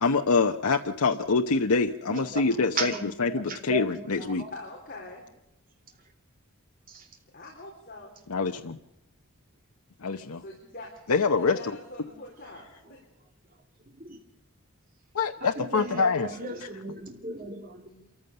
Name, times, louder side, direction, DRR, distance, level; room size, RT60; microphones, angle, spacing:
voice 1, 0.0-4.4 8.3-8.8 10.0-10.4 11.1-11.6 15.1-16.3, left 4 dB, 85° left, 0.8 m, -25 dB
voice 2, 2.1-2.5 2.7-4.5 6.9-7.1 14.0-14.2 15.4-17.8, right 3 dB, 40° right, 2.8 m, -36 dB
voice 3, 4.5-5.2 7.3-8.1 10.4-10.9 11.3-13.0 17.9-18.1, left 2 dB, 40° left, 4.1 m, -44 dB
27.0 x 14.5 x 6.8 m
head